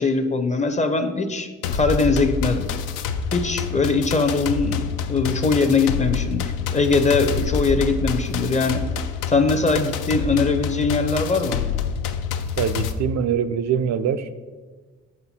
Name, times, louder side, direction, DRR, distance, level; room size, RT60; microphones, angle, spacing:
voice 1, 0.0-2.7 3.3-4.8 5.1-8.8 9.3-11.6, left 4 dB, 25° left, 7 dB, 0.5 m, -21 dB
sound 1, 1.6-12.9, left 6 dB, 90° left, 0.5 m, -27 dB
voice 2, 12.6-14.3, right 7 dB, 65° right, 9 dB, 0.4 m, -23 dB
6.8 x 4.3 x 4.1 m, 1.3 s
cardioid pair, 90°, 30 cm